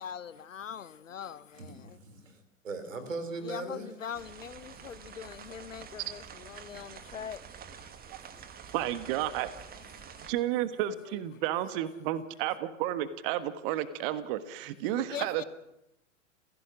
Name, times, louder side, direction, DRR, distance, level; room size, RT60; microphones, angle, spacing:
voice 1, 0.0-2.0 3.4-8.5 10.0-10.3 11.0-11.8 14.9-15.4, left 8 dB, 70° left, 1.0 m, -43 dB
voice 2, 1.5-3.9, right 3 dB, 70° right, 3.6 m, -39 dB
sound 1, 4.1-10.3, right 7 dB, 20° right, 1.7 m, -48 dB
voice 3, 8.7-9.5 10.2-15.4, right 12 dB, 40° right, 1.5 m, -32 dB
29.5 x 16.5 x 6.2 m
figure-of-eight pair, 90°, 39 cm